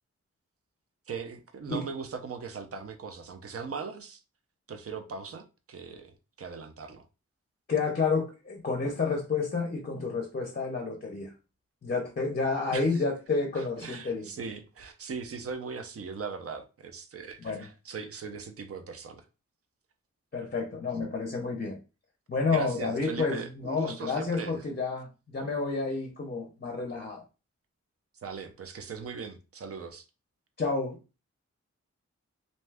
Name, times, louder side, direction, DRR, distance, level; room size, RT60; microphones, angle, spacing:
voice 1, 1.1-4.2 4.7-7.0 12.7-13.0 13.5-19.2 22.5-24.6 28.2-30.1, right 5 dB, 50° right, 0.5 m, -39 dB
voice 2, 7.7-11.3 11.8-14.3 17.4-17.7 20.3-21.8 22.3-27.2 30.6-31.0, left 4 dB, 35° left, 0.5 m, -30 dB
2.6 x 2.2 x 3.3 m
wide cardioid pair, 130°, 29 cm